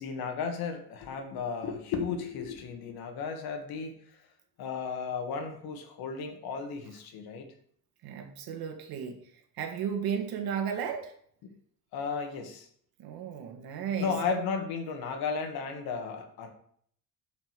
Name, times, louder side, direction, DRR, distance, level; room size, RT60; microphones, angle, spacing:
voice 1, 0.0-4.0 4.6-7.5 11.9-12.7 14.0-16.5, left 5 dB, 85° left, 5 dB, 1.8 m, -34 dB
voice 2, 8.0-9.2 9.6-11.1 13.0-14.1, right 7 dB, 75° right, 5 dB, 1.7 m, -34 dB
8.8 x 5.3 x 6.6 m, 0.62 s
cardioid pair, 170°, 36 cm